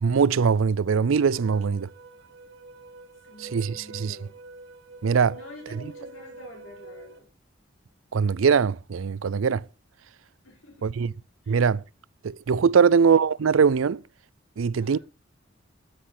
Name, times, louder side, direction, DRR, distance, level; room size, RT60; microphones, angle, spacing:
voice 1, 0.0-1.9 3.4-4.2 5.0-5.4 5.7-5.8 8.1-9.6 10.8-11.1 11.5-11.8 12.2-14.0 14.6-15.0, right 6 dB, 85° right, 0.5 m, -22 dB
sound 1, 1.2-7.2, right 2 dB, 65° right, 2.3 m, -46 dB
voice 2, 3.2-4.4 5.3-7.3 10.4-11.2 11.4-11.6 12.7-13.0 14.8-15.0, left 1 dB, 85° left, 5.1 m, -47 dB
13.0 x 8.7 x 4.3 m
head